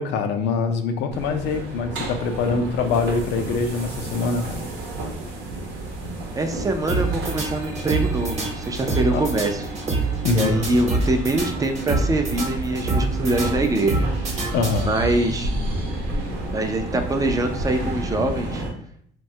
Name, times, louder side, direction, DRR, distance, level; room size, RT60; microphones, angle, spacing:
voice 1, 0.0-4.6 9.1-9.2 10.2-10.6 14.5-14.9, left 4 dB, 85° left, 6 dB, 0.4 m, -24 dB
sound 1, 1.1-18.7, right 1 dB, 80° right, 0.8 m, -31 dB
voice 2, 6.3-9.6 10.2-14.1 14.9-15.5 16.5-18.6, right 2 dB, 20° right, 6 dB, 0.3 m, -24 dB
sound 2, 6.9-15.2, right 3 dB, 40° right, 0.8 m, -27 dB
3.1 x 2.2 x 2.7 m, 0.64 s
cardioid pair, 110°, 17 cm